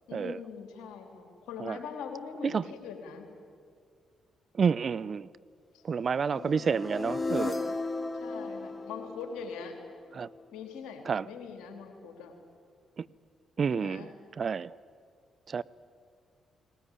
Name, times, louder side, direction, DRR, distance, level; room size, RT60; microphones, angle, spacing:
voice 1, 0.1-3.3 5.7-5.8 6.3-6.8 8.2-9.8 10.5-12.3 13.7-14.1, left 6 dB, 75° left, 3.0 m, -42 dB
voice 2, 4.5-5.3 5.8-7.7 10.1-10.3 11.0-11.3 13.0-13.1 13.6-14.1 14.4-14.8 15.5-15.6, right 6 dB, 50° right, 0.5 m, -29 dB
sound 1, 6.3-10.4, left 3 dB, 35° left, 0.7 m, -35 dB
19.0 x 18.0 x 9.9 m
hypercardioid pair, 40°, 0 cm